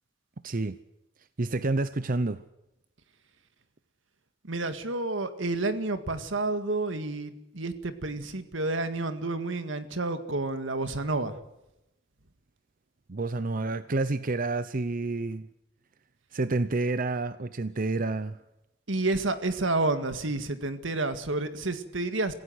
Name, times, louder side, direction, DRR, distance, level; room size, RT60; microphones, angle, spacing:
voice 1, 0.4-0.8 1.4-2.4 13.1-15.5 16.3-18.4, right 2 dB, 45° right, 0.7 m, -29 dB
voice 2, 4.4-11.4 18.9-22.3, right 2 dB, 80° right, 1.9 m, -30 dB
25.5 x 16.0 x 8.0 m
head